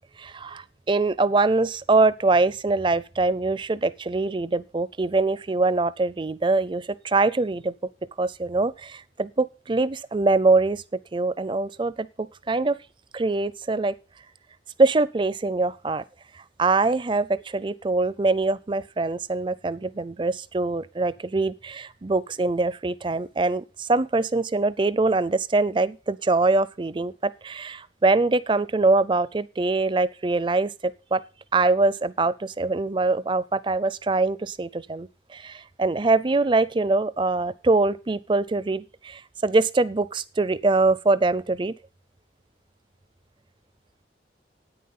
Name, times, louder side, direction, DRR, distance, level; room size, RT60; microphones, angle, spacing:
voice 1, 0.2-7.7 8.2-10.8 11.1-12.8 13.1-13.9 14.8-16.0 16.3-31.2 31.5-41.7, right 3 dB, 25° right, 19 dB, 0.4 m, -23 dB
9.5 x 9.2 x 5.6 m, 0.32 s
head